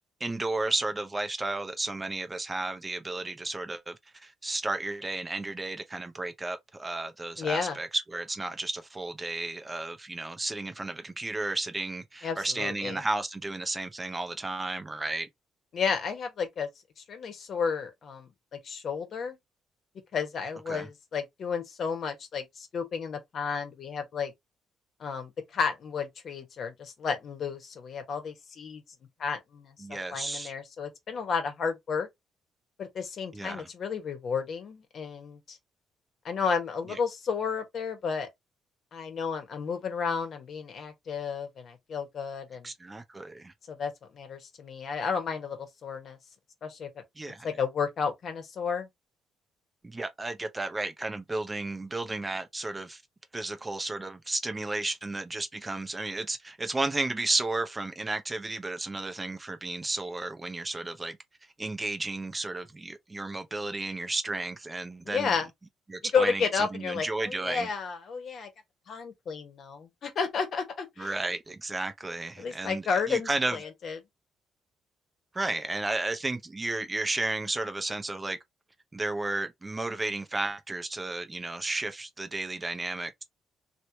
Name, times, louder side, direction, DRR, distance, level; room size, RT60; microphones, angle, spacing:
voice 1, 0.2-15.3 20.7-20.9 29.8-30.5 33.3-33.7 36.9-37.0 42.6-43.5 47.2-47.5 49.8-53.0 53.3-61.2 61.6-65.3 65.9-67.7 71.0-73.6 75.3-78.4 78.9-83.2, right 2 dB, 20° right, 0.6 m, -33 dB
voice 2, 7.4-7.8 12.2-13.0 15.7-16.7 17.0-19.4 20.1-24.3 25.0-28.8 29.2-32.1 32.8-35.6 36.2-38.3 38.9-42.7 43.7-46.2 46.6-46.9 47.4-48.9 65.0-65.5 66.1-68.5 68.9-71.2 72.4-74.0, left 5 dB, 60° left, 1.3 m, -32 dB
3.1 x 3.1 x 2.8 m
cardioid pair, 90°, 0 cm